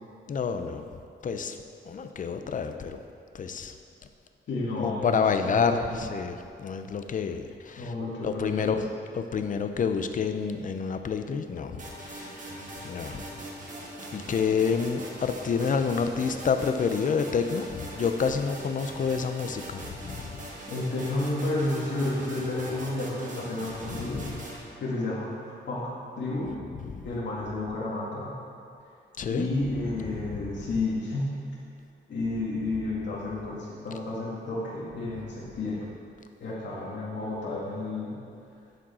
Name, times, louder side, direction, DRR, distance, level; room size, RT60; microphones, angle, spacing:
voice 1, 0.3-1.6 1.8-3.1 3.3-3.8 4.8-7.9 8.2-8.9 9.1-13.3 14.1-20.4 23.9-24.4 26.7-27.1 29.2-29.5 30.0-30.6, left 6 dB, 45° left, 8 dB, 0.5 m, -29 dB
voice 2, 4.5-6.0 7.8-8.8 20.7-26.6 27.0-28.4 29.3-31.4 32.1-35.9 36.4-38.2, left 2 dB, 70° left, -6 dB, 1.8 m, -31 dB
sound 1, 11.8-24.6, right 1 dB, 45° right, 1.5 m, -41 dB
11.0 x 5.1 x 4.2 m, 2.4 s
wide cardioid pair, 120°, 19 cm